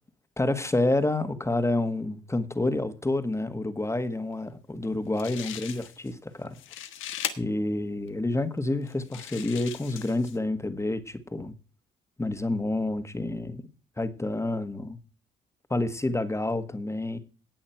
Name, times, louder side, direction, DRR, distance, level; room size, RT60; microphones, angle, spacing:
voice 1, 0.4-6.6 7.4-11.5 12.2-13.7 14.0-15.0 15.7-17.2, left 2 dB, 15° left, 1.7 m, -28 dB
sound 1, 4.8-4.9 5.2-6.1 6.5-7.3 8.1-8.2 8.9-10.4, left 11 dB, 85° left, 1.5 m, -38 dB
18.5 x 6.4 x 4.6 m
cardioid pair, 90°, 20 cm